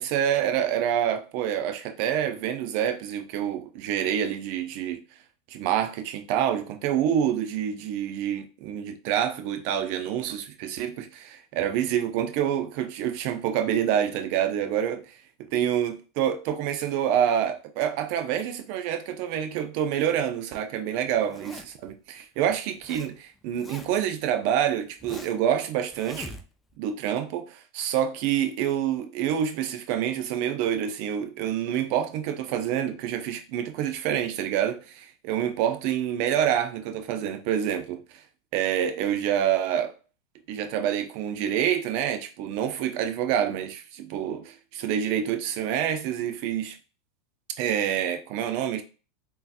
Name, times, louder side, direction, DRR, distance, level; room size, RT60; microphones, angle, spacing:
voice 1, 0.0-5.0 5.5-15.2 15.5-26.4 26.8-38.0 38.5-39.9 40.5-46.8 47.6-48.8, right 9 dB, 60° right, 0.6 m, -27 dB
Zipper (clothing), 21.2-21.9 22.5-23.1 23.4-24.1 24.6-25.5 25.9-26.8, left 2 dB, 15° left, 0.5 m, -43 dB
3.6 x 2.8 x 2.5 m
hypercardioid pair, 105°, 0 cm